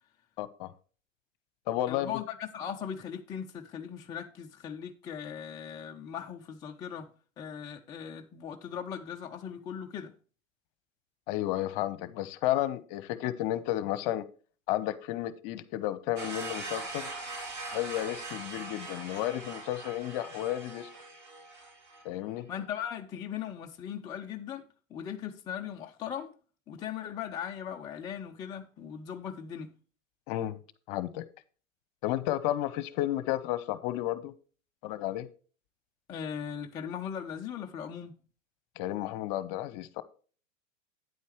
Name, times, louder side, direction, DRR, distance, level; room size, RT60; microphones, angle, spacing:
voice 1, 0.4-0.7 1.7-2.1 11.3-14.2 14.7-17.1 17.7-20.9 22.0-22.5 30.3-30.6 30.9-31.2 32.0-34.3 34.8-35.3 38.8-40.0, left 14 dB, 40° left, 0.9 m, -32 dB
voice 2, 1.9-7.1 7.4-10.1 22.5-24.6 24.9-26.3 26.7-29.7 36.1-38.1, left 8 dB, 10° left, 0.3 m, -39 dB
sound 1, 16.2-22.1, right 3 dB, 45° right, 3.7 m, -41 dB
9.4 x 8.6 x 3.1 m
figure-of-eight pair, 100°, 40 cm